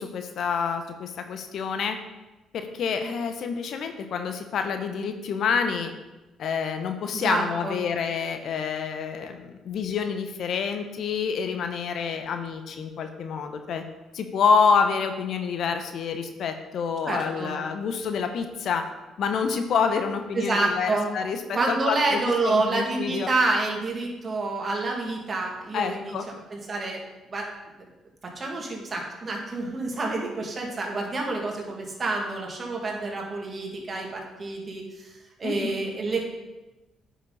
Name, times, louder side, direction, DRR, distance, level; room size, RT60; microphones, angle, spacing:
voice 1, 0.0-2.0 2.5-5.9 6.4-13.8 14.1-18.8 19.2-23.3 25.7-26.2 35.4-35.7, left 6 dB, 65° left, 7 dB, 0.9 m, -27 dB
voice 2, 7.1-7.8 17.0-17.5 20.3-21.1 21.5-27.0 27.3-27.5 28.2-36.3, right 3 dB, 40° right, 0 dB, 2.3 m, -28 dB
9.3 x 6.1 x 4.1 m, 1.1 s
hypercardioid pair, 55°, 0 cm